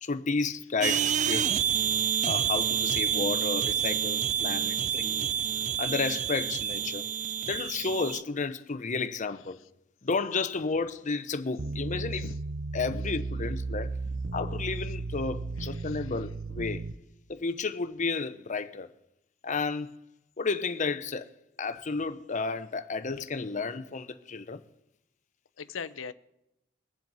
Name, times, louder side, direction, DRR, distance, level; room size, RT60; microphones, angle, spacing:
voice 1, 0.0-1.5 2.2-5.3 5.8-7.0 7.5-9.6 10.0-12.2 12.7-14.0 14.3-16.9 17.3-18.9 19.4-19.9 20.4-21.3 21.6-24.6, left 4 dB, 40° left, 0.7 m, -32 dB
sound 1, 0.8-8.2, right 9 dB, 40° right, 0.4 m, -28 dB
sound 2, 11.6-16.9, right 3 dB, 75° right, 0.7 m, -34 dB
voice 2, 15.6-16.1 25.6-26.1, left 5 dB, 85° left, 0.7 m, -41 dB
22.5 x 7.6 x 4.1 m
head